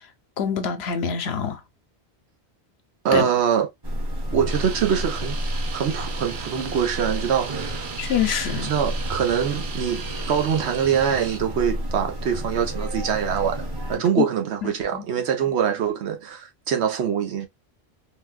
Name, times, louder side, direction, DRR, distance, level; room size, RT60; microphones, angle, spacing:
voice 1, 0.4-1.6 3.1-3.3 8.0-8.7 14.2-14.3 14.6-15.0, left 8 dB, 75° left, 0.9 m, -25 dB
voice 2, 3.0-3.7 4.3-5.4 5.7-8.0 8.5-13.6 13.9-17.5, right 8 dB, 85° right, 1.0 m, -24 dB
sound 1, 3.8-14.0, equal, 25° right, 0.7 m, -31 dB
sound 2, 4.5-11.4, right 6 dB, 65° right, 0.9 m, -37 dB
3.7 x 2.2 x 2.2 m
omnidirectional pair, 1.1 m